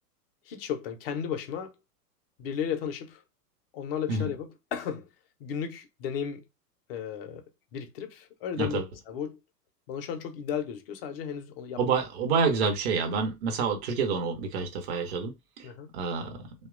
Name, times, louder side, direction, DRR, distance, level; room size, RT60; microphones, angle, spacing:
voice 1, 0.5-1.7 2.4-3.2 3.7-5.1 5.4-6.4 6.9-7.5 7.7-9.4 9.9-11.8 15.6-15.9, left 8 dB, 40° left, 0.5 m, -34 dB
voice 2, 11.8-15.7 15.9-16.4, right 5 dB, 40° right, 0.7 m, -28 dB
2.8 x 2.2 x 2.4 m
figure-of-eight pair, 95°, 48 cm